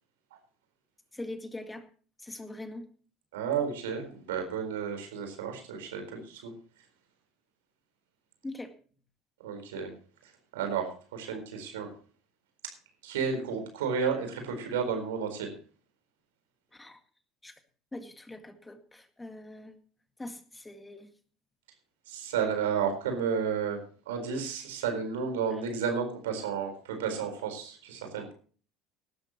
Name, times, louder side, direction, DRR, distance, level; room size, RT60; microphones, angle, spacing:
voice 1, 1.1-1.9 2.2-2.8 8.4-8.7 16.7-17.0 17.4-17.5 17.9-19.7 20.2-21.1, left 2 dB, 10° left, 8 dB, 2.0 m, -42 dB
voice 2, 3.3-6.5 9.4-9.9 10.5-11.9 13.0-15.5 22.1-23.8 24.1-28.3, right 6 dB, 70° right, 6 dB, 4.3 m, -32 dB
18.0 x 13.0 x 3.0 m, 0.40 s
figure-of-eight pair, 65°, 0 cm